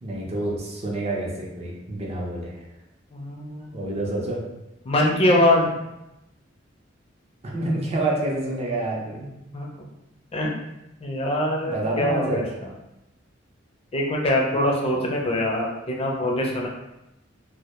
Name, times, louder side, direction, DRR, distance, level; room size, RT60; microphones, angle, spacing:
voice 1, 0.0-2.6 3.7-4.4 7.4-9.3 11.6-12.4, right 2 dB, 35° right, -3 dB, 0.5 m, -28 dB
voice 2, 3.1-3.8 4.9-5.8 9.1-9.7 10.3-10.5 11.0-12.7 13.9-16.7, left 1 dB, 30° left, -1 dB, 0.4 m, -23 dB
2.1 x 2.1 x 2.8 m, 0.91 s
head